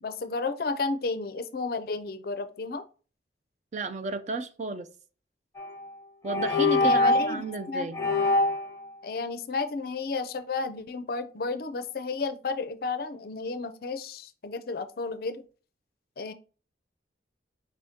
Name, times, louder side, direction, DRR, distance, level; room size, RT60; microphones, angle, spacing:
voice 1, 0.0-2.8 6.8-7.9 9.0-15.4 16.2-16.3, left 4 dB, 50° left, 0.4 m, -32 dB
voice 2, 3.7-4.9 6.2-8.0, right 2 dB, 40° right, 0.4 m, -32 dB
sound 1, 5.6-5.8 6.3-7.4 7.9-8.7, left 2 dB, 15° left, 0.9 m, -24 dB
5.1 x 3.5 x 2.7 m
head